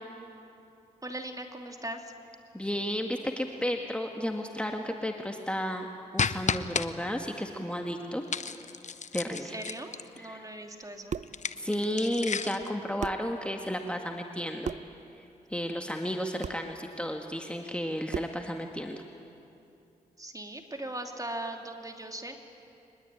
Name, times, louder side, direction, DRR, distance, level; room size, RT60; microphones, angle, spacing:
voice 1, 1.0-2.1 9.2-11.2 20.2-22.4, right 1 dB, 20° right, 4 dB, 3.2 m, -39 dB
voice 2, 2.5-5.9 6.1-8.2 9.1-9.6 10.2-10.5 11.6-14.7 15.5-19.0, equal, 5° left, 3 dB, 2.1 m, -33 dB
sound 1, 6.2-6.9 8.3-10.2 11.2-12.7, left 5 dB, 45° left, 1.0 m, -32 dB
sound 2, 10.8-11.4 12.6-12.7 13.0-13.3 14.6-15.0 16.4-16.7 18.1-18.5, right 6 dB, 45° right, 0.6 m, -36 dB
23.5 x 20.5 x 9.1 m, 2.7 s
supercardioid pair, 40°, 16 cm